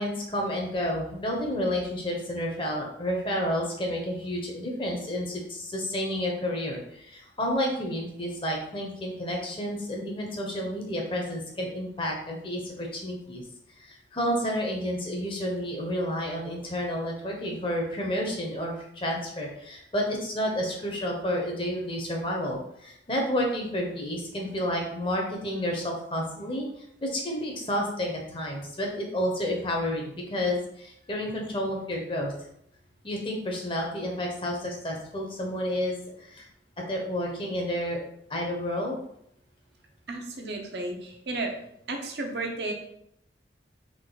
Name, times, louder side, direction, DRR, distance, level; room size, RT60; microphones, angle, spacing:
voice 1, 0.0-13.4 13.8-32.3 33.0-36.5 36.9-38.0 38.3-39.0, equal, 30° left, 0 dB, 0.9 m, -30 dB
voice 2, 40.1-41.5 41.9-42.7, right 2 dB, 70° right, 2 dB, 0.8 m, -33 dB
3.8 x 3.2 x 3.8 m, 0.73 s
head